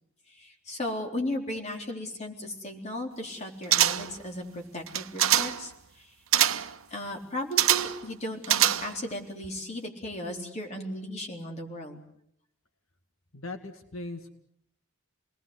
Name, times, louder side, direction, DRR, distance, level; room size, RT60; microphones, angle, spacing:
voice 1, 0.3-6.1 6.9-12.0, left 1 dB, 30° left, 2 dB, 3.9 m, -36 dB
sound 1, 3.7-4.2 4.9-5.7 6.3-6.7 7.6-8.0 8.4-9.1 9.4-9.5, right 11 dB, 75° right, 1.0 m, -24 dB
voice 2, 13.3-14.3, left 2 dB, 75° left, 6 dB, 2.1 m, -39 dB
29.0 x 20.0 x 8.0 m, 0.72 s
head